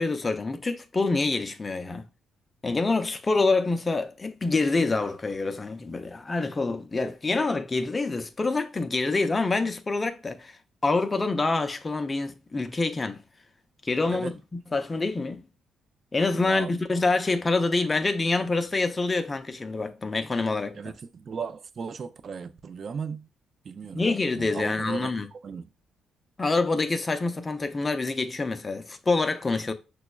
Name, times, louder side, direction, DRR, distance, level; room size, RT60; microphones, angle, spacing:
voice 1, 0.0-2.1 2.6-13.2 13.8-14.4 14.7-15.4 16.1-20.8 23.9-25.3 26.4-29.7, left 3 dB, 25° left, 0.4 m, -26 dB
voice 2, 16.3-16.7 20.7-23.3 23.6-24.0 24.3-25.7, right 6 dB, 50° right, 0.4 m, -36 dB
6.0 x 2.0 x 2.2 m
cardioid pair, 90°, 0 cm